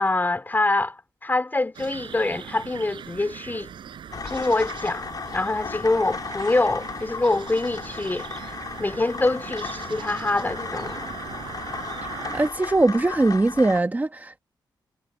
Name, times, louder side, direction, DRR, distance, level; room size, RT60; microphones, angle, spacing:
voice 1, 0.0-3.7 4.2-8.5 8.8-11.1, left 2 dB, 25° left, 3.5 m, -25 dB
sound 1, 1.7-12.5, right 8 dB, 85° right, 6.8 m, -40 dB
sound 2, 4.1-13.8, left 5 dB, 50° left, 5.9 m, -35 dB
voice 2, 12.3-14.4, right 2 dB, 20° right, 1.4 m, -21 dB
cardioid pair, 85°, 8 cm